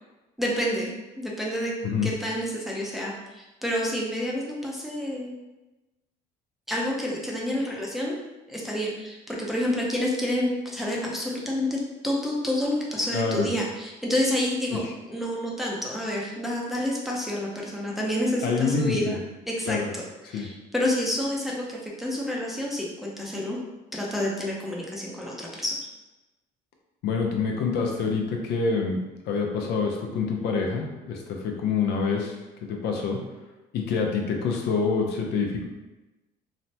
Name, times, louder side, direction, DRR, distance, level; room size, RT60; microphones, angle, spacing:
voice 1, 0.4-1.7 2.0-5.3 6.7-8.1 8.5-14.8 15.1-19.2 19.5-23.6 23.9-25.7, left 1 dB, ahead, -4 dB, 0.6 m, -29 dB
voice 2, 13.1-13.5 18.4-19.2 19.7-19.9 20.3-20.5 27.0-32.4 32.6-33.2 33.7-35.7, left 5 dB, 75° left, 1 dB, 0.5 m, -26 dB
3.2 x 2.1 x 2.7 m, 1.1 s
cardioid pair, 110°, 17 cm